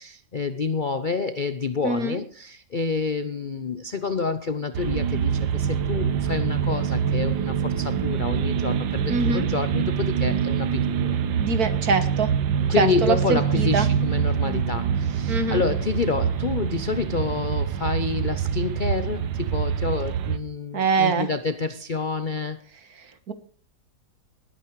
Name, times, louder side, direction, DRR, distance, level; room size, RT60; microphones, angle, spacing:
voice 1, 0.0-11.2 12.7-22.6, left 4 dB, 55° left, 0.5 m, -28 dB
voice 2, 1.8-2.2 9.1-9.5 11.3-12.3 12.8-13.9 15.3-15.6 20.7-21.3 23.0-23.3, right 4 dB, 55° right, 1.9 m, -24 dB
sound 1, 4.7-20.4, right 8 dB, 85° right, 1.7 m, -25 dB
19.5 x 9.3 x 4.7 m
omnidirectional pair, 2.0 m